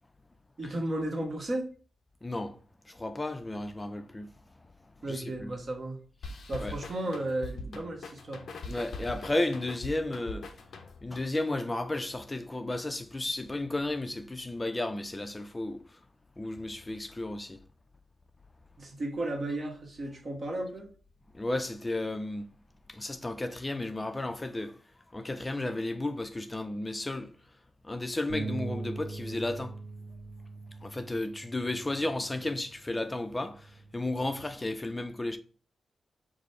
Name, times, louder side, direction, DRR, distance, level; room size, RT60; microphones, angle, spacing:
voice 1, 0.6-1.7 5.0-6.0 6.5-8.4 18.8-20.9, right 1 dB, 50° right, 1.1 m, -34 dB
voice 2, 2.2-2.6 2.9-4.3 5.1-5.5 6.3-6.7 8.7-10.5 11.0-16.0 16.4-17.6 21.3-22.5 22.9-24.8 25.1-27.3 27.8-29.8 30.8-35.4, left 2 dB, 25° left, 0.4 m, -33 dB
sound 1, 6.2-11.2, left 2 dB, 75° left, 0.5 m, -42 dB
sound 2, 28.3-34.5, right 4 dB, 70° right, 0.7 m, -42 dB
4.9 x 2.0 x 4.3 m
cardioid pair, 55°, 0 cm